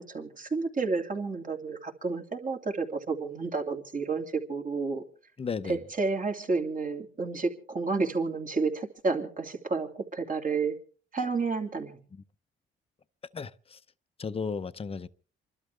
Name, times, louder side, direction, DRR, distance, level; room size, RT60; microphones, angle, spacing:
voice 1, 0.0-5.0 5.6-10.8 11.1-12.0, right 4 dB, 40° right, 2.7 m, -30 dB
voice 2, 5.4-5.8 13.3-13.8 14.2-15.1, left 5 dB, 30° left, 0.8 m, -34 dB
28.5 x 12.0 x 3.4 m
cardioid pair, 90°, 20 cm